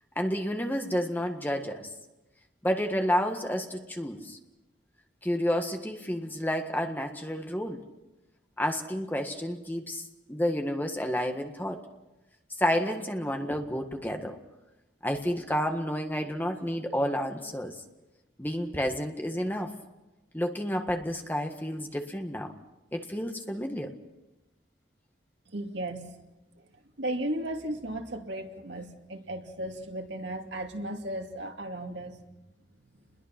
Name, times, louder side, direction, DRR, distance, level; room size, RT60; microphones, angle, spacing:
voice 1, 0.1-1.9 2.6-4.4 5.2-7.8 8.6-11.8 12.6-14.4 15.0-17.7 18.4-19.7 20.3-22.5 22.9-23.9, equal, 10° left, 4 dB, 1.6 m, -30 dB
voice 2, 25.5-26.1 26.6-26.7 27.0-32.2 33.0-33.1, right 1 dB, 75° right, 3 dB, 2.5 m, -35 dB
29.0 x 21.5 x 6.0 m, 1.0 s
head